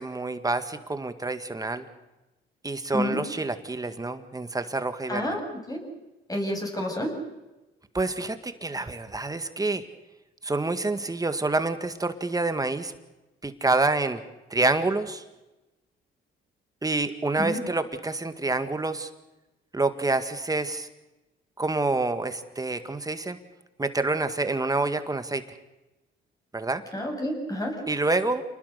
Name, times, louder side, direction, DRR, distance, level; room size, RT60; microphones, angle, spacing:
voice 1, 0.0-1.9 2.6-5.4 7.9-9.8 10.4-12.9 13.4-14.2 14.5-15.2 16.8-19.1 19.7-20.9 21.6-23.4 23.8-25.4 26.5-26.8 27.9-28.4, right 2 dB, 20° right, 9 dB, 1.8 m, -27 dB
voice 2, 5.1-5.4 5.7-5.8 6.3-7.1 17.4-17.6 26.9-27.8, left 1 dB, 20° left, 1 dB, 7.7 m, -29 dB
28.0 x 20.0 x 6.8 m, 1.0 s
cardioid pair, 90°, 20 cm